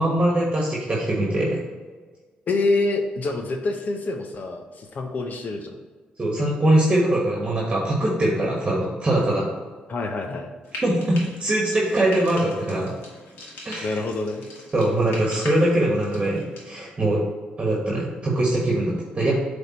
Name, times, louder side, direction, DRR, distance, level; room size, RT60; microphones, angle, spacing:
voice 1, 0.0-1.6 6.2-9.5 10.8-12.9 13.6-14.0 14.7-17.2 17.6-19.4, right 1 dB, 30° right, -3 dB, 1.5 m, -22 dB
voice 2, 2.5-5.7 9.9-10.5 13.8-14.4, left 3 dB, 55° left, 4 dB, 0.8 m, -26 dB
Frying (food), 10.6-16.7, left 1 dB, 85° left, 1.7 m, -41 dB
7.9 x 3.6 x 4.3 m, 1.4 s
cardioid pair, 70°, 3 cm